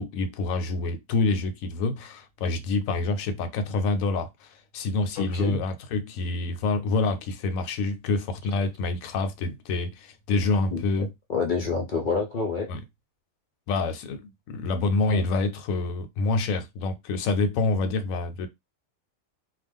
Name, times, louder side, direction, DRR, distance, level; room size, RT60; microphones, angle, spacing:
voice 1, 0.0-11.1 12.7-12.8 13.7-18.5, left 3 dB, 80° left, 1.0 m, -27 dB
voice 2, 5.2-5.6 10.7-12.7, left 4 dB, 55° left, 0.5 m, -28 dB
2.4 x 2.2 x 3.5 m
omnidirectional pair, 1.4 m